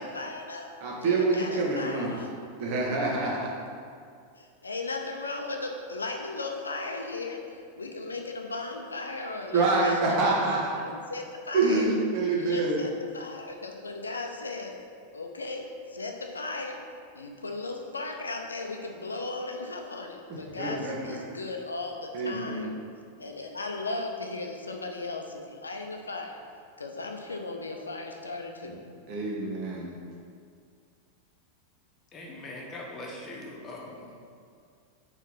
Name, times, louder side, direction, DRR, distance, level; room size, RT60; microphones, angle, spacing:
voice 1, 0.0-0.7 1.0-2.3 4.4-11.9 12.4-14.7 15.1-16.8 17.1-22.7 23.2-26.4 26.8-28.8, left 3 dB, 75° left, 3 dB, 0.6 m, -36 dB
voice 2, 0.8-2.1 2.6-3.5 9.5-10.6 11.5-12.7 20.3-21.2 22.1-22.7 28.6-28.7 29.1-30.0, right 3 dB, 45° right, -3 dB, 1.5 m, -26 dB
voice 3, 32.1-34.1, left 1 dB, 25° left, -2 dB, 1.2 m, -41 dB
4.5 x 4.4 x 5.6 m, 2.3 s
figure-of-eight pair, 90°, 0 cm